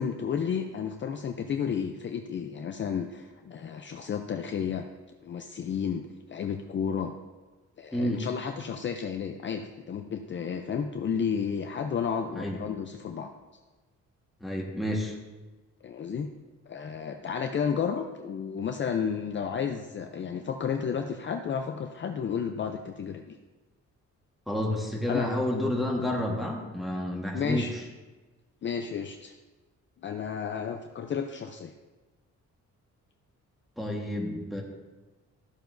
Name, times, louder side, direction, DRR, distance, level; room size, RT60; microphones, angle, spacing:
voice 1, 0.0-4.8 5.2-7.1 7.8-13.3 15.8-16.3 16.7-23.4 25.1-25.3 27.3-27.9 28.6-29.3 30.0-31.7, left 7 dB, 40° left, 5 dB, 0.5 m, -32 dB
voice 2, 7.9-8.2 12.3-12.6 14.4-15.1 24.5-27.7 33.8-34.6, left 1 dB, ahead, -1 dB, 1.3 m, -30 dB
13.0 x 6.9 x 2.6 m, 1.2 s
cardioid pair, 130°, 30 cm